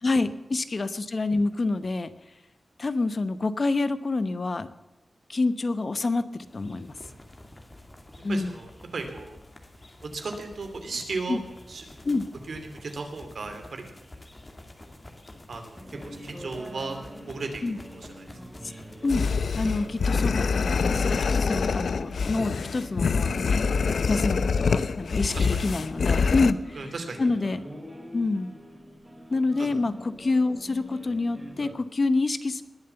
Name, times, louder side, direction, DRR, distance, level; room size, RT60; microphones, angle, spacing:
voice 1, 0.0-2.1 2.8-4.7 5.3-6.9 8.2-8.5 11.3-11.4 12.0-12.2 17.6-17.8 19.0-19.2 19.5-23.6 24.1-26.8 27.2-27.6 28.1-28.5 29.3-32.6, left 3 dB, 45° left, 12 dB, 0.9 m, -27 dB
sound 1, 6.5-20.2, left 1 dB, 20° left, 2.2 m, -49 dB
voice 2, 8.3-9.4 10.0-11.4 11.7-11.8 12.5-13.9 15.5-17.0 17.3-18.3 20.9-21.3 25.3-25.6 26.1-26.3 26.7-27.3 29.3-29.7, right 3 dB, 70° right, 5 dB, 2.8 m, -36 dB
sound 2, 15.8-31.7, equal, 10° right, 3.3 m, -45 dB
sound 3, 19.1-26.5, left 5 dB, 85° left, 0.6 m, -25 dB
20.0 x 7.5 x 7.0 m, 1.0 s
wide cardioid pair, 120°, 0 cm